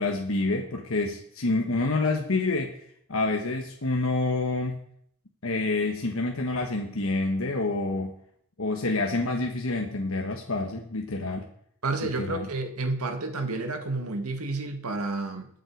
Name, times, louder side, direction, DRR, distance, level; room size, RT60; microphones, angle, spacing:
voice 1, 0.0-2.7 3.1-4.8 5.4-8.1 8.6-11.5 12.2-12.5, left 2 dB, 65° left, 2 dB, 1.3 m, -27 dB
voice 2, 11.8-15.5, right 3 dB, 85° right, 5 dB, 1.9 m, -30 dB
20.5 x 7.7 x 4.7 m, 0.69 s
head